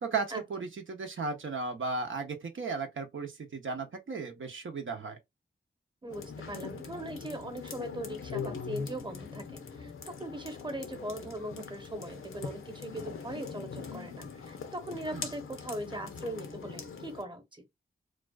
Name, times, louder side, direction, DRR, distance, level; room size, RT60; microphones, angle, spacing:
voice 1, 0.0-5.2 15.1-15.3, right 4 dB, 70° right, 0.7 m, -35 dB
voice 2, 6.0-17.6, right 1 dB, 20° right, 1.0 m, -40 dB
sound 1, 6.1-17.2, left 5 dB, 80° left, 0.6 m, -42 dB
2.4 x 2.3 x 2.3 m
cardioid pair, 40°, 21 cm